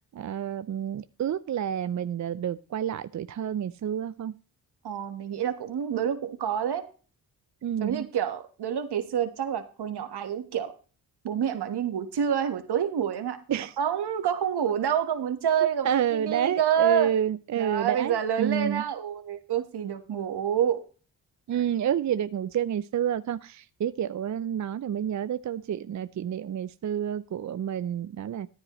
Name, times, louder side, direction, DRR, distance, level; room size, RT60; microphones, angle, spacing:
voice 1, 0.1-4.3 7.6-8.1 13.5-13.7 15.8-18.8 21.5-28.5, right 9 dB, 45° right, 0.5 m, -29 dB
voice 2, 4.8-6.8 7.8-10.7 11.2-17.1 17.5-20.8, right 8 dB, 70° right, 1.4 m, -28 dB
14.0 x 9.7 x 3.1 m
supercardioid pair, 50°, 41 cm